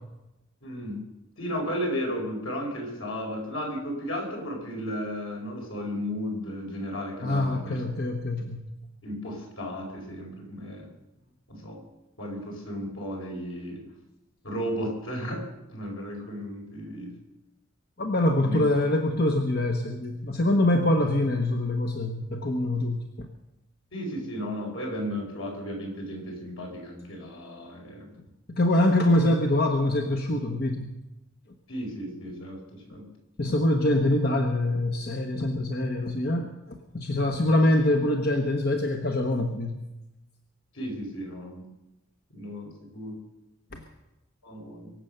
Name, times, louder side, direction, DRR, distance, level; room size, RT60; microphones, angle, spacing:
voice 1, 0.6-1.1 1.4-7.8 9.0-10.9 11.5-11.8 12.2-13.8 14.4-17.1 18.0-18.6 23.9-28.1 31.7-33.1 40.7-41.6 42.3-43.2 44.4-44.9, equal, 80° left, 0 dB, 5.2 m, -34 dB
voice 2, 7.2-8.7 18.0-23.3 28.5-30.9 33.4-39.8 43.7-43.8, left 1 dB, 50° left, 3 dB, 1.1 m, -24 dB
23.5 x 8.0 x 6.7 m, 0.96 s
head